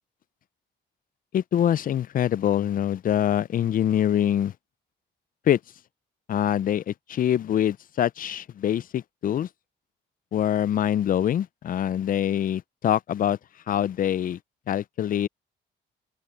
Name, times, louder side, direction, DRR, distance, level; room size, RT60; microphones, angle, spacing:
voice 1, 1.3-4.5 5.5-5.6 6.3-9.5 10.3-13.4 13.7-14.4 14.7-15.3, left 10 dB, 45° left, 0.4 m, -24 dB
open air
cardioid pair, 90°, 20 cm